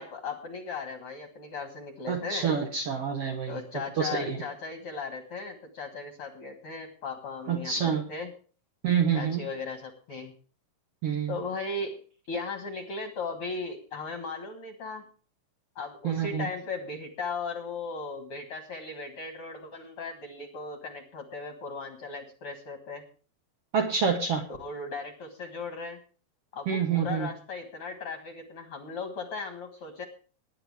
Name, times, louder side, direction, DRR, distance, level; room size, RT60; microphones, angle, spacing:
voice 1, 0.0-2.5 3.5-8.3 9.1-10.3 11.3-12.0 12.3-15.0 15.7-23.0 24.5-26.0 26.5-30.0, left 4 dB, 55° left, 5 dB, 1.6 m, -37 dB
voice 2, 2.1-3.6 4.0-4.4 7.5-8.0 8.8-9.4 11.0-11.3 16.0-16.5 23.7-24.4 26.7-27.3, right 6 dB, 80° right, 5 dB, 1.3 m, -27 dB
20.0 x 10.0 x 3.4 m, 0.39 s
omnidirectional pair, 4.7 m